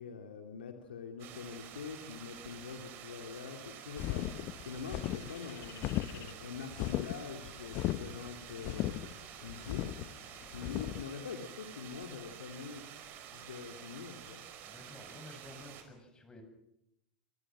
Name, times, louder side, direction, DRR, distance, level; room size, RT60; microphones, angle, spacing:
voice 1, 0.0-4.3 4.6-8.9 9.4-9.8 10.4-12.8 13.3-14.4, left 6 dB, 80° left, 4 dB, 2.9 m, -44 dB
sound 1, 1.2-15.8, right 9 dB, 45° right, 5.2 m, -50 dB
sound 2, 4.0-11.0, left 15 dB, 45° left, 1.1 m, -37 dB
voice 2, 14.6-16.4, left 1 dB, 15° left, 6 dB, 7.9 m, -52 dB
28.0 x 24.5 x 6.3 m, 0.81 s
hypercardioid pair, 95°, 5 cm